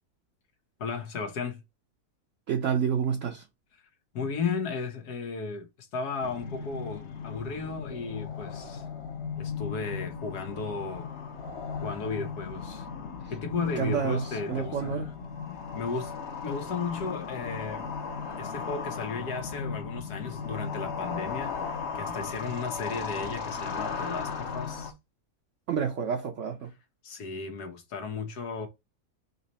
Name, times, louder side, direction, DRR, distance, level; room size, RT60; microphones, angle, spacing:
voice 1, 0.8-1.6 4.1-8.8 9.3-11.1 11.8-12.9 13.3-14.9 15.7-16.1 16.4-17.9 18.4-21.5 21.9-24.9 27.0-28.7, left 5 dB, 90° left, 1.7 m, -34 dB
voice 2, 2.5-3.5 13.8-15.1 25.7-26.7, right 7 dB, 60° right, 0.9 m, -29 dB
sound 1, 6.2-24.9, left 5 dB, 50° left, 1.1 m, -36 dB
4.0 x 3.0 x 4.1 m
omnidirectional pair, 1.6 m